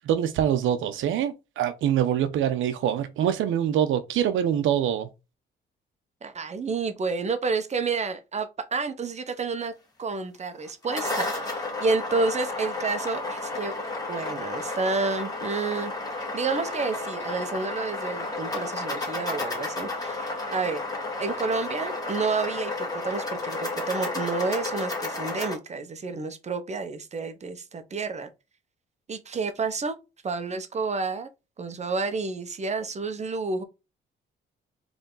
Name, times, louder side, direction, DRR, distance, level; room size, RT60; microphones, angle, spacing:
voice 1, 0.0-5.1, right 10 dB, 80° right, 0.8 m, -24 dB
voice 2, 6.2-9.7 10.0-15.9 16.3-20.8 21.2-28.3 29.1-30.0 30.2-31.3 31.6-33.6, right 4 dB, 35° right, 0.9 m, -30 dB
sound 1, 10.7-25.5, left 2 dB, 20° left, 2.1 m, -32 dB
4.0 x 3.4 x 3.9 m
cardioid pair, 90°, 20 cm